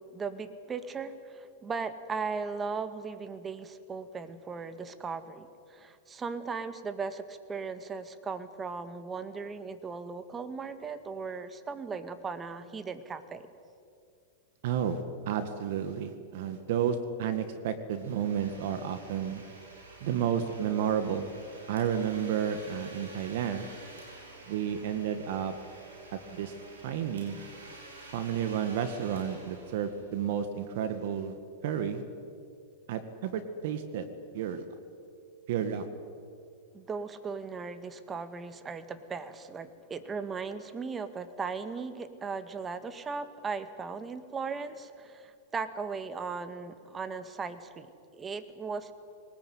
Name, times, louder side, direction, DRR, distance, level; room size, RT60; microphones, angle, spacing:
voice 1, 0.0-13.5 36.7-47.9 48.1-48.9, right 5 dB, 20° right, 11 dB, 1.8 m, -37 dB
voice 2, 14.6-19.4 20.0-21.3 21.7-23.7 24.5-25.5 26.1-26.5 26.8-27.4 28.1-31.4 31.6-32.0 32.9-34.1 34.3-34.7 35.5-35.9, right 8 dB, 65° right, 10 dB, 1.8 m, -31 dB
Domestic sounds home sounds, 17.9-30.5, right 2 dB, 90° right, 6.3 m, -50 dB
22.5 x 20.0 x 9.5 m, 2.4 s
hypercardioid pair, 110°, 0 cm